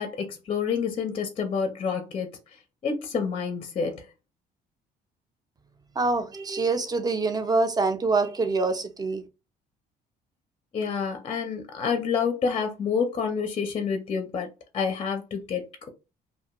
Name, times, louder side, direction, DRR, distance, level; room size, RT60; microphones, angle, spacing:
voice 1, 0.0-2.4 2.8-4.1 10.7-14.5 14.7-15.9, left 6 dB, 35° left, 0.5 m, -28 dB
voice 2, 6.0-9.2, right 3 dB, 25° right, 0.5 m, -25 dB
2.5 x 2.2 x 2.8 m
cardioid pair, 110°, 17 cm